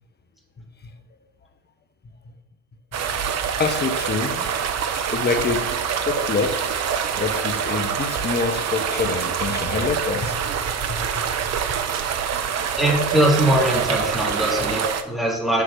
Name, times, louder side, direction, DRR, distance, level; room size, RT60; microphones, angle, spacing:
sound 1, 2.9-15.0, right 7 dB, 35° right, 1.0 m, -25 dB
voice 1, 3.1-4.6 5.1-5.7 6.0-6.7 7.1-10.5 10.8-11.2, left 4 dB, 20° left, 1.1 m, -26 dB
voice 2, 12.8-15.6, right 1 dB, ahead, 3.3 m, -21 dB
7.2 x 6.1 x 7.7 m
figure-of-eight pair, 70°, 44 cm